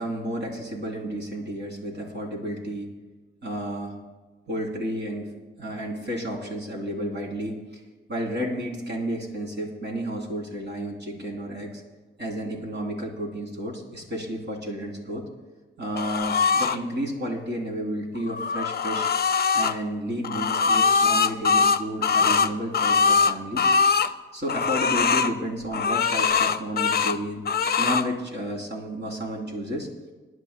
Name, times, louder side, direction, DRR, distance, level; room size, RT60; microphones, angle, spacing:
voice 1, 0.0-2.9 3.4-3.9 4.5-5.3 5.6-7.6 8.1-11.8 12.2-15.2 15.8-19.1 19.5-23.7 24.3-27.4 27.8-29.9, equal, 60° right, -1 dB, 3.3 m, -31 dB
sound 1, 16.0-16.8 18.2-19.7 20.2-24.1 24.5-25.3 25.7-27.2 27.5-28.1, left 5 dB, 50° left, 0.6 m, -22 dB
24.5 x 11.0 x 2.2 m, 1.2 s
cardioid pair, 75°, 21 cm